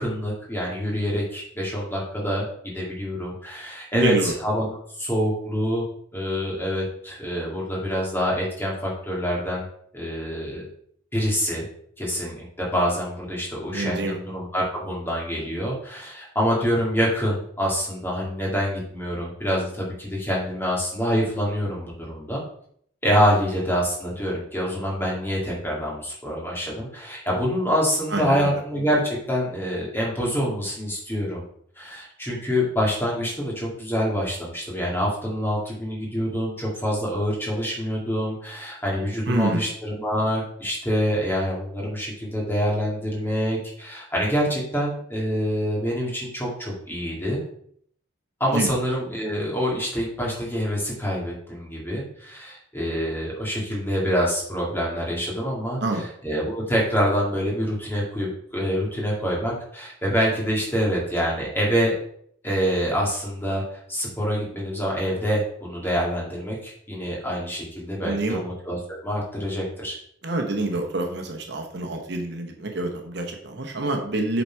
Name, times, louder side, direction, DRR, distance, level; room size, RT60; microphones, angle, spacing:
voice 1, 0.0-2.5 2.7-5.8 6.1-9.6 9.9-10.7 11.1-11.7 12.0-22.4 23.0-31.4 31.8-47.4 48.4-55.8 56.2-62.0 62.4-63.6 63.9-70.0, equal, 10° left, -3 dB, 2.1 m, -26 dB
voice 2, 3.9-4.3 13.7-14.2 28.1-28.5 39.3-39.6 48.5-48.8 55.8-56.0 68.0-68.4 70.2-74.4, right 2 dB, 55° right, 3 dB, 1.0 m, -27 dB
7.9 x 4.1 x 4.6 m, 0.65 s
head